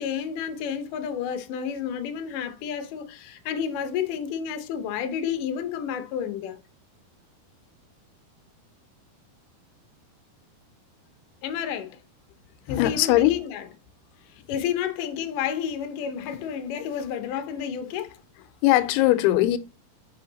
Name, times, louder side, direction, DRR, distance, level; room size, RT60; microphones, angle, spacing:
voice 1, 0.0-6.6 11.4-12.0 12.7-13.7 14.5-18.1, left 8 dB, 70° left, 2.2 m, -30 dB
voice 2, 12.7-13.3 18.6-19.6, left 15 dB, 90° left, 2.6 m, -20 dB
6.2 x 5.6 x 3.9 m
omnidirectional pair, 4.5 m